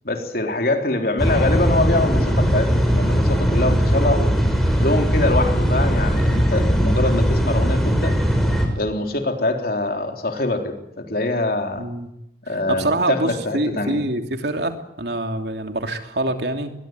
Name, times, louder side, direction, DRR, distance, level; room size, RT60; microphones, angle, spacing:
voice 1, 0.0-4.3 4.8-8.2 8.8-11.9 12.5-14.0, left 2 dB, 55° left, 4 dB, 3.6 m, -24 dB
sound 1, 1.2-8.7, equal, ahead, 5.1 m, -19 dB
voice 2, 11.7-12.1 12.5-16.7, right 2 dB, 70° right, 5 dB, 2.9 m, -25 dB
23.0 x 21.5 x 9.2 m, 0.83 s
head